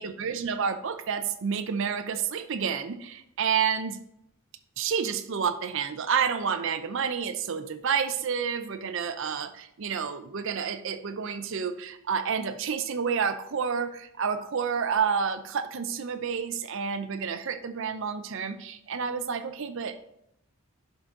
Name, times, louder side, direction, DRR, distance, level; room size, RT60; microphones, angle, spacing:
voice 1, 0.0-4.0 4.8-20.0, right 6 dB, 60° right, 9 dB, 0.5 m, -29 dB
11.0 x 3.9 x 3.7 m, 0.76 s
head